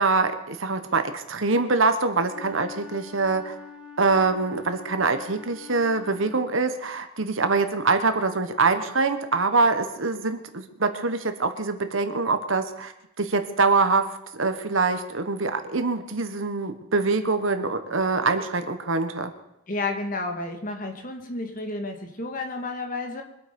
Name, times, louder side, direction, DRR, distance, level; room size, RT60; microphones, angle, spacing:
voice 1, 0.0-3.5 4.0-12.9 13.2-14.1 14.3-19.3, right 3 dB, 65° right, 8 dB, 1.4 m, -24 dB
Wind instrument woodwind instrument, 2.2-6.8, left 6 dB, 5° right, 1.7 m, -44 dB
voice 2, 19.7-23.2, left 2 dB, 40° left, 4 dB, 1.9 m, -31 dB
23.5 x 8.6 x 5.3 m, 0.84 s
head